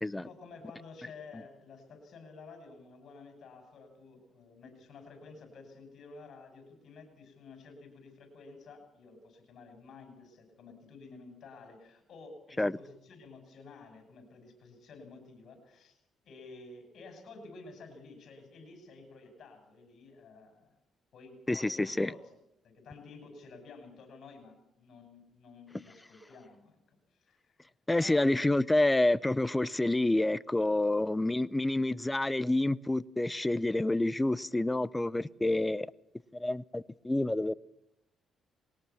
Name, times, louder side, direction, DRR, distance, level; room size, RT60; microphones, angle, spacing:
voice 1, 0.1-20.7 21.1-22.4 22.6-27.5 28.0-28.5, left 4 dB, 60° left, 5 dB, 6.4 m, -52 dB
voice 2, 21.5-22.1 27.9-35.9 36.3-37.5, left 2 dB, 10° left, 19 dB, 0.7 m, -28 dB
21.0 x 18.0 x 7.1 m, 0.83 s
cardioid pair, 90°, 0 cm